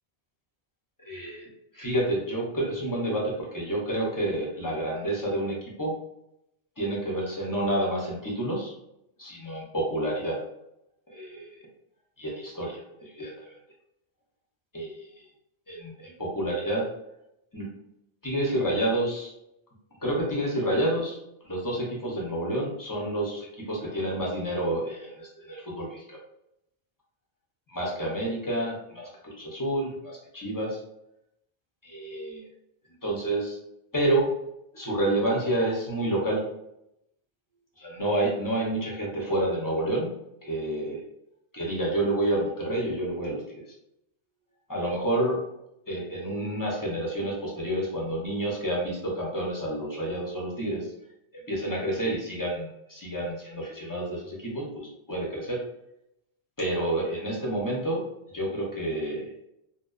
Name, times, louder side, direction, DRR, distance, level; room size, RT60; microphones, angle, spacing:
voice 1, 1.0-6.0 6.8-8.7 9.2-10.5 11.1-11.5 12.2-13.6 14.7-15.2 15.7-16.9 17.5-17.7 18.2-19.3 20.0-21.2 21.4-26.2 27.7-30.8 31.8-32.5 33.0-33.6 33.9-34.4 34.7-36.5 37.8-40.1 40.4-41.0 41.5-43.6 44.7-45.4 45.9-50.9 51.5-55.6 56.6-59.3, right 1 dB, 25° left, -4 dB, 0.5 m, -29 dB
2.6 x 2.0 x 2.3 m, 0.82 s
omnidirectional pair, 1.1 m